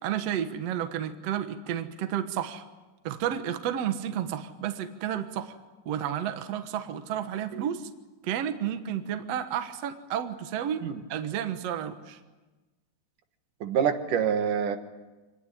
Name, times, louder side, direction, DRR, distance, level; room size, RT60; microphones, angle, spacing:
voice 1, 0.0-2.6 3.0-5.6 5.9-7.9 8.2-10.8 11.1-12.2, right 10 dB, 60° right, 8 dB, 2.1 m, -31 dB
voice 2, 13.6-14.8, right 7 dB, 80° right, 7 dB, 3.0 m, -26 dB
26.0 x 19.5 x 10.0 m, 1.2 s
omnidirectional pair, 3.6 m